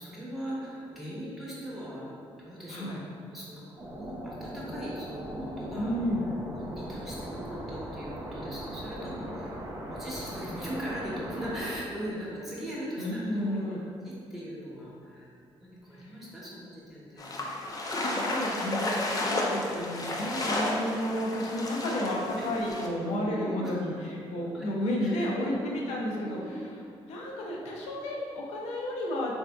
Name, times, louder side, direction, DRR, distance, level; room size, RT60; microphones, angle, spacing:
voice 1, 0.0-2.1 2.4-2.9 3.3-3.6 4.0-5.9 6.5-15.3 15.6-17.3 22.4-22.5 23.0-23.8 24.5-24.7 25.0-25.6 26.3-26.6, equal, ahead, -8 dB, 0.9 m, -39 dB
voice 2, 2.7-3.0 5.8-6.2 13.0-13.8 16.0-16.1 18.0-26.6 27.1-29.4, left 1 dB, 80° left, -2 dB, 0.5 m, -32 dB
sound 1, 3.8-11.8, right 1 dB, 25° right, 0.5 m, -39 dB
sound 2, 17.2-22.9, left 1 dB, 35° left, 0.5 m, -32 dB
3.4 x 2.6 x 2.2 m, 2.4 s
supercardioid pair, 65°, 11 cm